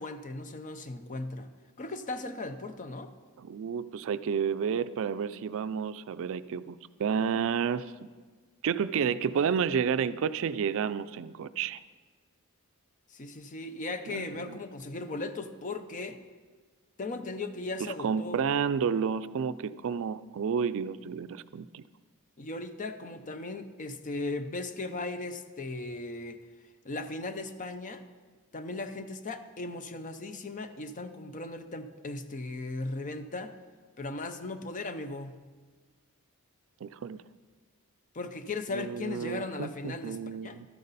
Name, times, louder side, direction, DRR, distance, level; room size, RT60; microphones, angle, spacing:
voice 1, 0.0-1.5 1.8-3.1 13.1-16.2 17.0-18.4 22.4-26.4 26.8-28.0 28.5-33.5 34.0-35.4 38.1-40.6, left 2 dB, 35° left, 10 dB, 0.6 m, -37 dB
voice 2, 3.4-7.9 8.6-11.8 14.1-14.6 18.0-21.8 36.8-37.2 38.7-40.7, right 7 dB, 65° right, 14 dB, 0.4 m, -31 dB
12.5 x 9.4 x 4.1 m, 1.4 s
head